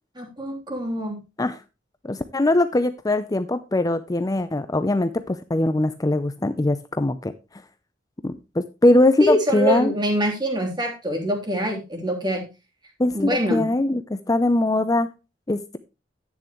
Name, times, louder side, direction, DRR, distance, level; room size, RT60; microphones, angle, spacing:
voice 1, 0.1-1.2 9.2-12.4 13.1-13.6, equal, 25° right, 1 dB, 3.2 m, -24 dB
voice 2, 2.0-7.3 8.2-9.9 13.0-15.1 15.5-15.8, left 2 dB, 20° left, 11 dB, 0.5 m, -21 dB
11.0 x 9.2 x 3.1 m, 0.28 s
head